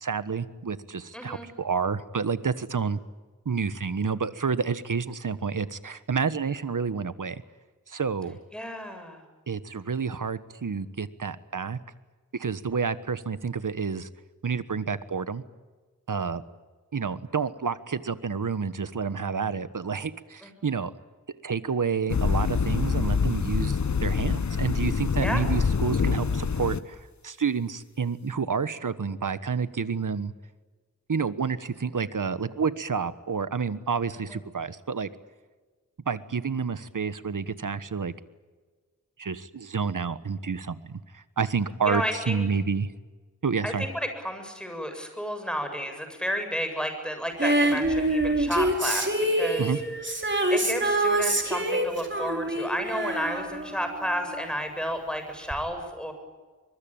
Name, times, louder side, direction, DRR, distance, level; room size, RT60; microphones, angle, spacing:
voice 1, 0.0-3.0 3.4-7.4 7.9-8.4 9.5-11.8 12.3-14.1 14.4-15.4 16.1-16.4 16.9-20.9 21.4-27.0 27.2-30.3 31.1-35.1 36.1-38.1 39.2-42.9 43.4-43.9 49.6-49.8, right 5 dB, 85° right, 14 dB, 1.4 m, -29 dB
voice 2, 1.1-1.5 8.5-9.2 20.4-20.7 25.2-25.5 34.3-34.4 41.9-42.4 43.6-49.7 50.5-56.1, equal, 5° left, 6 dB, 7.6 m, -32 dB
sound 1, 22.1-26.8, left 5 dB, 65° left, 1.0 m, -25 dB
Female singing, 47.4-54.4 55.5-55.6, right 1 dB, 35° right, 4.7 m, -26 dB
24.5 x 23.0 x 9.0 m, 1.4 s
wide cardioid pair, 60°, 31 cm